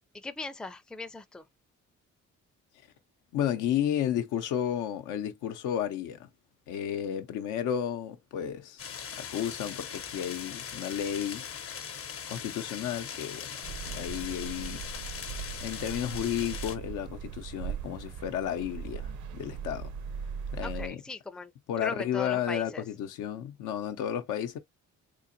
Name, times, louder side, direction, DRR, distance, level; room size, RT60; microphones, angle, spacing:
voice 1, 0.1-1.4 20.6-21.5 21.8-22.8, left 3 dB, 5° left, 0.4 m, -38 dB
voice 2, 3.3-6.3 6.7-8.8 9.1-11.4 12.3-13.6 13.9-14.8 15.6-19.9 20.5-21.0 21.7-24.6, left 10 dB, 90° left, 0.7 m, -32 dB
sound 1, 8.8-16.8, left 7 dB, 50° left, 0.7 m, -40 dB
sound 2, 13.6-20.9, right 7 dB, 70° right, 0.7 m, -39 dB
3.9 x 2.8 x 2.6 m
cardioid pair, 90°, 30 cm